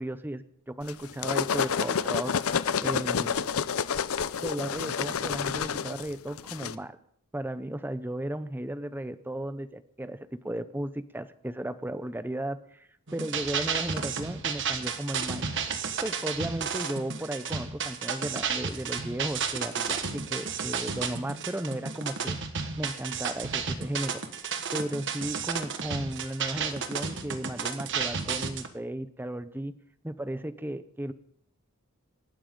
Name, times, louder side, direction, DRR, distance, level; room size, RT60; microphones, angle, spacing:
voice 1, 0.0-2.4 2.8-3.4 4.4-7.0 7.3-12.6 13.1-15.5 16.0-22.4 22.8-24.2 24.7-29.7 30.0-31.1, right 1 dB, 10° right, 13 dB, 0.7 m, -35 dB
sound 1, 0.9-6.8, left 7 dB, 70° left, 0.6 m, -29 dB
sound 2, 13.1-28.7, right 6 dB, 60° right, 1.5 m, -32 dB
27.0 x 12.5 x 3.8 m, 0.66 s
head